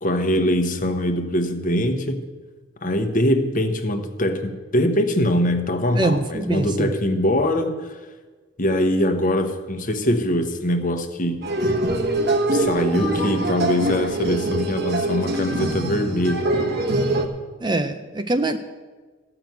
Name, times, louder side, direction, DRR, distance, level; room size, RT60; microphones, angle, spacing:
voice 1, 0.0-2.2 2.8-8.0 8.6-11.4 12.5-16.5, equal, 40° left, 7 dB, 1.0 m, -22 dB
voice 2, 6.0-6.9 17.6-18.6, right 2 dB, 20° right, 8 dB, 0.5 m, -23 dB
sound 1, 11.4-17.3, right 1 dB, 50° right, 1.2 m, -23 dB
14.5 x 5.9 x 9.3 m, 1.4 s
head